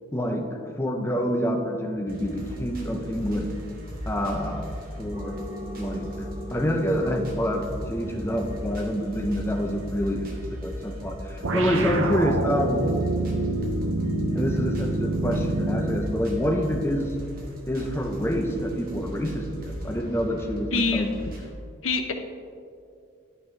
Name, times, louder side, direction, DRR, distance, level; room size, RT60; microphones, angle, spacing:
voice 1, 0.1-0.5 0.8-3.5 4.1-4.7 5.0-5.4 5.8-6.1 6.5-12.9 14.3-17.1 17.7-21.1, equal, 10° left, 3 dB, 0.5 m, -27 dB
sound 1, 2.1-21.5, equal, 45° right, 1.2 m, -37 dB
sound 2, 5.1-10.1, equal, 20° right, 0.8 m, -39 dB
sound 3, 11.4-16.2, right 2 dB, 75° right, 0.6 m, -26 dB
voice 2, 20.7-21.2 21.8-22.1, left 4 dB, 75° left, 5 dB, 0.7 m, -25 dB
10.5 x 5.8 x 3.3 m, 2.4 s
head